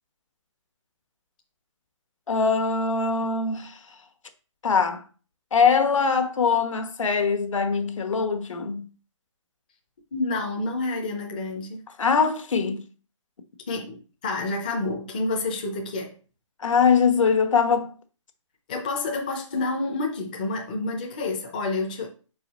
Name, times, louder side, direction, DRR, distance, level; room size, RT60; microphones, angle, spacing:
voice 1, 2.3-3.8 4.6-5.0 5.5-8.9 12.0-12.8 16.6-18.0, left 5 dB, 75° left, 1.1 m, -22 dB
voice 2, 10.1-11.8 13.7-16.1 18.7-22.1, left 2 dB, 15° left, 0.5 m, -29 dB
5.3 x 4.7 x 4.0 m
hypercardioid pair, 175°, 17 cm